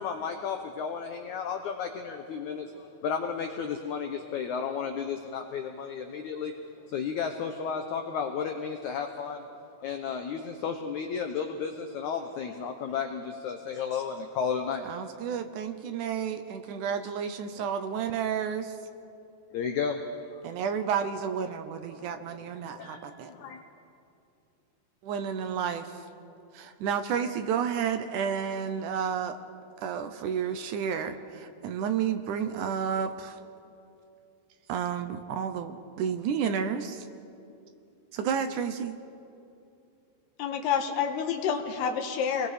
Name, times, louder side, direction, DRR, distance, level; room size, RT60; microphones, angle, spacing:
voice 1, 0.0-6.5 6.9-9.5 9.8-14.8 17.6-17.7 19.5-20.0 20.3-20.4 21.9-23.0 23.3-23.6, left 6 dB, 75° left, 5 dB, 1.8 m, -33 dB
voice 2, 14.8-18.8 20.4-23.3 25.0-26.0 26.5-29.4 29.8-33.4 34.7-37.1 38.1-39.0, right 7 dB, 75° right, 8 dB, 1.9 m, -31 dB
voice 3, 40.4-42.5, left 7 dB, 90° left, 4 dB, 3.3 m, -28 dB
29.0 x 21.5 x 5.0 m, 2.6 s
omnidirectional pair, 4.5 m